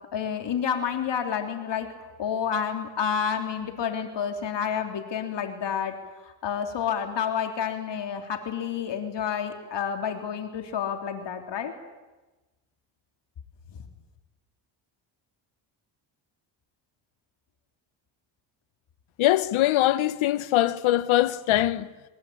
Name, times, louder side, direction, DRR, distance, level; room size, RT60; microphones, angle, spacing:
voice 1, 0.1-1.9 2.2-5.9 6.2-11.7, left 7 dB, 60° left, 3.4 m, -29 dB
voice 2, 19.2-21.9, left 14 dB, 80° left, 1.4 m, -22 dB
29.0 x 23.5 x 8.7 m
cardioid pair, 100°, 47 cm